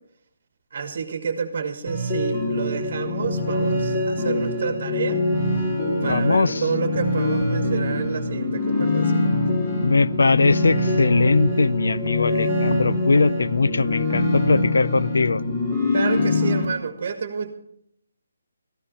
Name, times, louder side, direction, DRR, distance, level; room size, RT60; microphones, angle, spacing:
voice 1, 0.7-5.2 6.0-9.3 15.9-17.5, right 5 dB, 40° right, 7 dB, 1.4 m, -29 dB
sound 1, 1.9-16.7, left 2 dB, 15° left, 2.4 m, -24 dB
voice 2, 6.0-6.6 9.8-15.4, left 3 dB, 80° left, 19 dB, 0.4 m, -20 dB
14.0 x 13.0 x 4.2 m, 0.71 s
hypercardioid pair, 170°, 0 cm